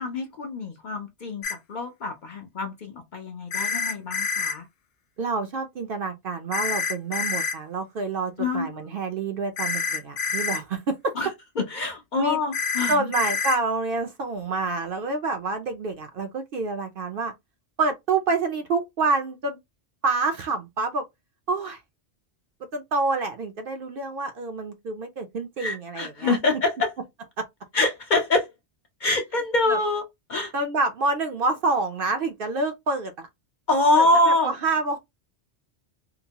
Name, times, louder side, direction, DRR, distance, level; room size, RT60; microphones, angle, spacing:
voice 1, 0.0-4.7 8.4-8.8 11.2-11.3 11.6-13.1 25.6-26.9 27.7-28.5 29.0-30.0 30.3-30.5 33.7-34.5, left 2 dB, 55° left, 0.6 m, -25 dB
sound 1, 1.4-1.5 3.5-4.5 6.5-7.6 9.6-10.6 12.5-13.6, left 5 dB, 85° left, 0.9 m, -27 dB
voice 2, 5.2-11.1 12.1-12.4 12.9-17.3 17.8-19.6 20.0-21.0 21.5-21.8 22.7-26.4 27.4-27.5 29.7-29.8 30.5-33.3 33.9-35.0, right 3 dB, 60° right, 0.6 m, -27 dB
2.8 x 2.1 x 2.7 m
omnidirectional pair, 1.2 m